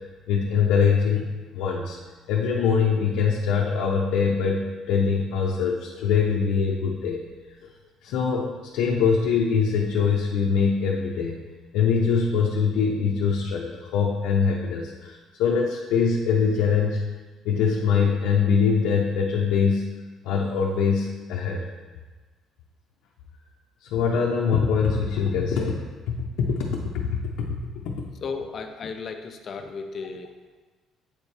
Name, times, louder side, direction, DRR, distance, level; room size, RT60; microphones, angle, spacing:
voice 1, 0.3-1.2 1.5-2.0 2.3-7.2 8.0-11.4 11.7-17.1 17.4-19.9 20.2-21.6 23.8-27.6 27.9-28.0, left 6 dB, 85° left, -2 dB, 0.6 m, -23 dB
voice 2, 28.2-30.6, left 5 dB, 35° left, 6 dB, 0.5 m, -35 dB
8.0 x 4.4 x 3.3 m, 1.3 s
cardioid pair, 175°, 0 cm